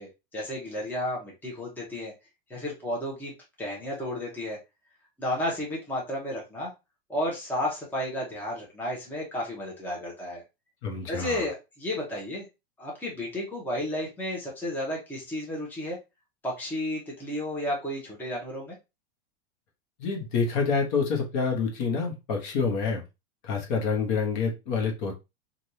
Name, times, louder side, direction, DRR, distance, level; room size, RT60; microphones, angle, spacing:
voice 1, 0.0-2.1 2.5-3.3 3.6-4.6 5.2-6.7 7.1-10.4 11.1-12.5 12.8-16.0 16.4-18.7, left 1 dB, 5° left, -3 dB, 0.9 m, -32 dB
voice 2, 10.8-11.4 20.0-23.0 23.4-25.2, left 5 dB, 50° left, 2 dB, 1.1 m, -27 dB
3.3 x 2.5 x 2.7 m, 0.25 s
supercardioid pair, 145°, 32 cm